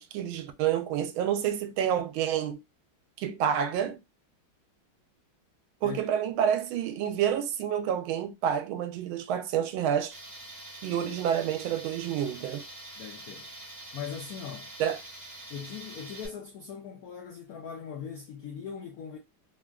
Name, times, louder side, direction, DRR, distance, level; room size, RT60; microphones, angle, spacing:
voice 1, 0.0-2.6 3.2-4.0 5.8-10.2 10.8-12.6 14.8-15.0, right 9 dB, 85° right, 1.4 m, -28 dB
Tools, 10.1-16.3, right 2 dB, 25° right, 1.1 m, -45 dB
voice 2, 13.0-13.5 13.9-14.7 15.5-19.2, left 7 dB, 80° left, 0.8 m, -40 dB
3.6 x 2.4 x 2.2 m
omnidirectional pair, 2.2 m